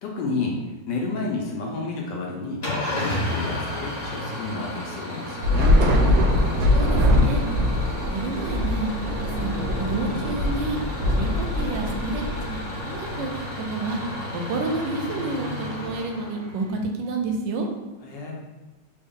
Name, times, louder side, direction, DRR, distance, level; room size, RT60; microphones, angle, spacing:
voice 1, 0.0-0.6 0.9-2.6 2.9-5.8 18.0-18.3, left 3 dB, 75° left, -1 dB, 1.3 m, -30 dB
Engine starting / Idling, 2.6-16.8, left 1 dB, 40° left, 0.6 m, -33 dB
Thunder / Rain, 5.4-12.9, left 1 dB, 70° right, 0.9 m, -22 dB
voice 2, 6.7-7.4 8.1-8.9 9.2-10.8 11.2-14.0 14.3-17.7, right 3 dB, 90° right, 3 dB, 1.3 m, -29 dB
3.4 x 2.3 x 3.6 m, 1.2 s
omnidirectional pair, 2.0 m